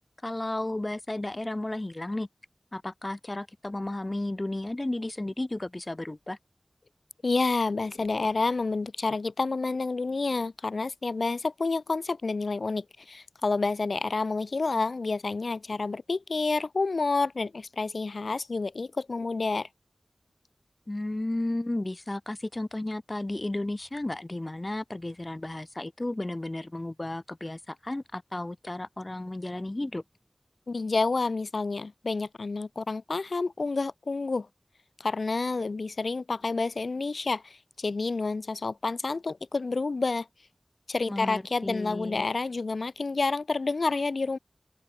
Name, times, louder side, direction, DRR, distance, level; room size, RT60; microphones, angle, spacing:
voice 1, 0.2-2.3 2.7-6.4 20.9-30.0 41.1-42.2, left 1 dB, 35° left, 2.0 m, -33 dB
voice 2, 7.2-19.7 30.7-34.5 35.0-40.3 40.9-44.4, left 3 dB, 80° left, 3.0 m, -29 dB
open air
wide cardioid pair, 65°, 0 cm